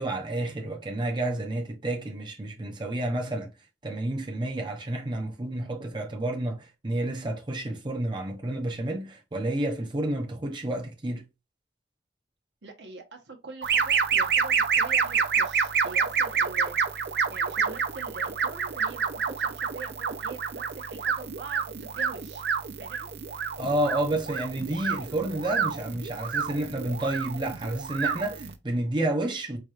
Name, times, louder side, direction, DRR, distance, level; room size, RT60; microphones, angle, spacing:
voice 1, 0.0-3.5 3.8-11.2 23.6-29.6, right 1 dB, 25° right, 0.7 m, -30 dB
voice 2, 12.6-16.8 17.3-22.4 22.8-23.1, right 3 dB, 80° right, 1.0 m, -44 dB
sound 1, 13.6-28.5, right 6 dB, 65° right, 0.5 m, -28 dB
4.6 x 2.9 x 2.4 m
head